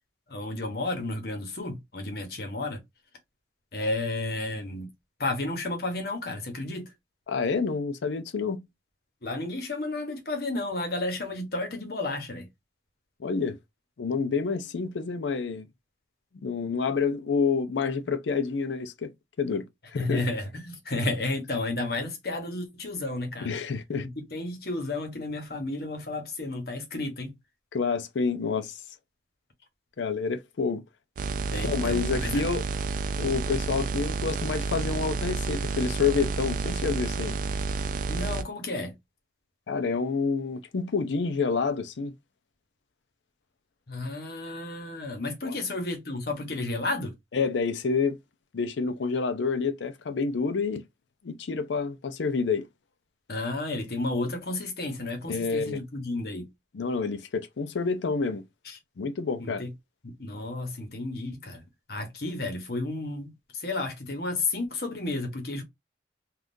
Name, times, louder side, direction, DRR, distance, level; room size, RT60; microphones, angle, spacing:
voice 1, 0.3-2.8 3.7-4.9 5.2-6.9 9.2-12.5 19.9-23.6 24.0-27.3 31.5-32.4 38.1-38.9 43.9-47.1 53.3-56.5 58.6-58.8 59.4-59.7 60.0-65.6, left 2 dB, 55° left, 1.0 m, -32 dB
voice 2, 7.3-8.6 13.2-13.6 14.0-15.7 16.4-19.1 19.4-20.2 23.4-24.1 27.7-28.8 30.0-30.8 31.6-32.6 33.2-37.4 39.7-42.1 45.4-45.5 47.3-48.2 48.5-50.8 51.2-52.7 55.3-55.8 56.7-58.4 59.0-59.6, left 5 dB, 85° left, 0.5 m, -28 dB
sound 1, 31.2-38.4, right 4 dB, 45° right, 0.3 m, -30 dB
3.5 x 2.4 x 2.6 m
head